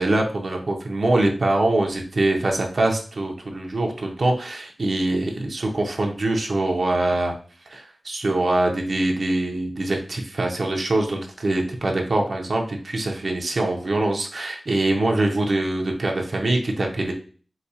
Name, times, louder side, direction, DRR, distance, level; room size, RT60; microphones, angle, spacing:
voice 1, 0.0-7.3 7.7-17.1, right 2 dB, 65° right, 1 dB, 0.7 m, -23 dB
4.8 x 2.3 x 2.8 m, 0.41 s
wide cardioid pair, 75°, 0 cm